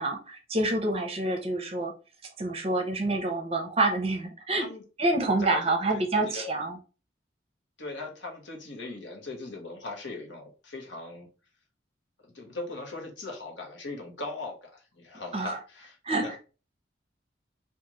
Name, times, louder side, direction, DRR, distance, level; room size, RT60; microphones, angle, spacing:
voice 1, 0.0-1.9 2.4-4.7 5.0-6.8 15.3-15.6 16.0-16.4, right 2 dB, 30° right, 3 dB, 0.6 m, -27 dB
voice 2, 5.4-6.5 7.8-11.3 12.2-16.0 16.2-16.3, left 2 dB, 75° left, 1 dB, 1.1 m, -39 dB
3.1 x 2.5 x 3.7 m, 0.34 s
head